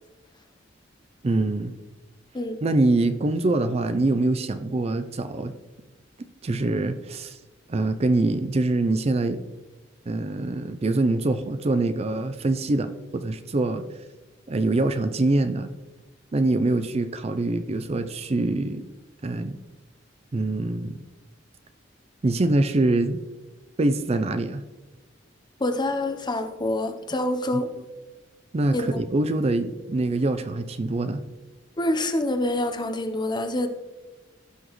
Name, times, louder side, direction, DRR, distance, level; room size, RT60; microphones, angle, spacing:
voice 1, 1.2-1.7 2.6-5.5 6.4-7.4 7.7-9.4 10.1-13.8 14.5-15.7 16.3-18.9 19.2-19.6 20.3-21.0 22.2-23.2 23.8-24.6 28.5-31.2, right 2 dB, 35° right, 10 dB, 0.4 m, -24 dB
voice 2, 25.6-27.7 28.7-29.0 31.8-33.7, left 1 dB, 25° left, 7 dB, 0.8 m, -26 dB
17.0 x 6.1 x 3.1 m, 1.2 s
head